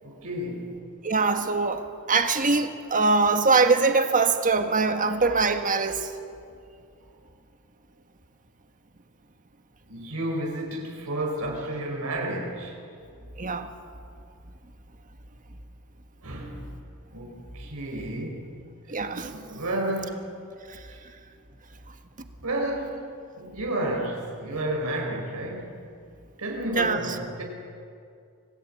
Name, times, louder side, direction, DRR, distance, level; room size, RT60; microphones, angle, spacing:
voice 1, 0.0-0.7 9.9-12.8 16.2-16.6 17.1-18.5 18.9-19.0 19.3-20.2 20.9-21.0 22.4-23.0 23.4-25.7 26.4-27.4, right 1 dB, 75° right, 0 dB, 4.3 m, -31 dB
voice 2, 1.0-6.1 13.4-13.7 18.9-19.3 20.7-20.8 26.8-27.0, right 4 dB, 35° right, 7 dB, 1.6 m, -23 dB
26.5 x 18.5 x 8.6 m, 2.4 s
head